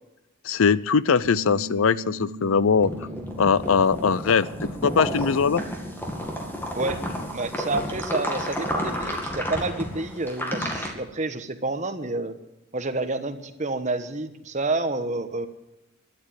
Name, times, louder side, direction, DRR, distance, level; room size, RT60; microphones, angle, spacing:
voice 1, 0.4-2.9 3.4-4.5 4.8-5.6, left 5 dB, 70° left, 19 dB, 0.5 m, -21 dB
Bass guitar, 1.2-7.5, right 1 dB, 90° right, 1.5 m, -42 dB
sound 1, 2.7-10.9, equal, 10° left, 2.0 m, -31 dB
voice 2, 7.3-12.3 12.7-15.5, right 2 dB, 35° right, 8 dB, 1.1 m, -29 dB
13.0 x 10.5 x 9.1 m, 0.95 s
head